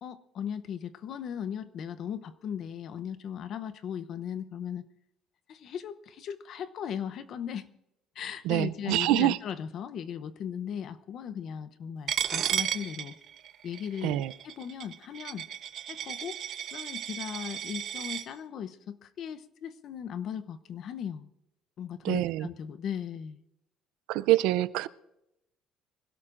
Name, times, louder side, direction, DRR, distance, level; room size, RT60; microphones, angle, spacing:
voice 1, 0.0-4.8 5.5-7.7 8.2-13.2 13.6-15.4 15.9-16.4 16.7-21.3 21.8-23.4, left 8 dB, 45° left, 0.7 m, -37 dB
voice 2, 8.4-9.4 14.0-14.3 22.0-22.5 24.1-24.9, right 15 dB, 80° right, 0.5 m, -25 dB
Coin (dropping), 12.1-18.2, right 10 dB, 45° right, 0.9 m, -34 dB
24.5 x 17.0 x 2.5 m
cardioid pair, 155°, 0 cm